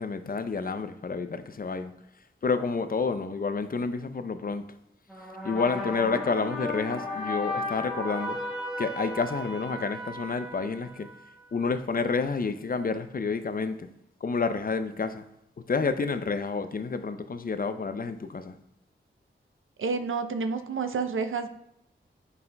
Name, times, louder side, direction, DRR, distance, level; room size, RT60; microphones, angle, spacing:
voice 1, 0.0-1.9 2.4-4.6 5.4-8.4 8.8-11.1 11.5-13.9 14.2-15.2 15.7-18.6, left 4 dB, 45° left, 10 dB, 0.5 m, -29 dB
sound 1, 5.1-11.5, left 1 dB, ahead, 1.2 m, -35 dB
voice 2, 19.8-21.5, right 4 dB, 75° right, 8 dB, 0.6 m, -29 dB
8.2 x 5.4 x 2.2 m, 0.78 s
cardioid pair, 45°, 21 cm